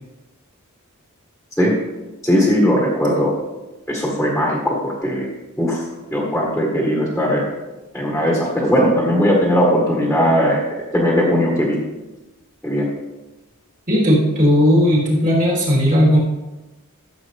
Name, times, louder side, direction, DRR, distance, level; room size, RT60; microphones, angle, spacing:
voice 1, 2.2-3.3 3.9-5.8 6.1-7.5 7.9-10.6 10.9-11.8 12.6-12.9, equal, 5° left, -3 dB, 1.7 m, -18 dB
voice 2, 13.9-16.2, equal, 35° right, -5 dB, 3.7 m, -15 dB
13.5 x 7.5 x 3.5 m, 1.1 s
head